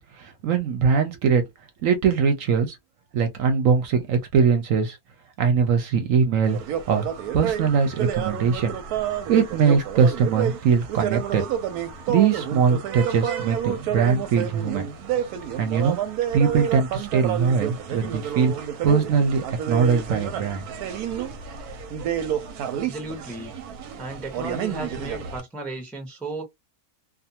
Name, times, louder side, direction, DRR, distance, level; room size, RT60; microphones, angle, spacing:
voice 1, 0.2-1.4 1.8-2.8 3.1-5.0 5.4-6.6 6.9-7.1 7.3-8.7 9.3-11.4 12.1-14.9 15.6-16.0 16.3-18.5 18.8-20.7 21.2-21.3, right 6 dB, 70° right, 0.9 m, -21 dB
sound 1, 6.4-25.4, right 9 dB, 90° right, 1.1 m, -29 dB
voice 2, 22.7-23.5 24.0-26.4, right 2 dB, ahead, 0.4 m, -35 dB
2.5 x 2.3 x 2.8 m
omnidirectional pair, 1.6 m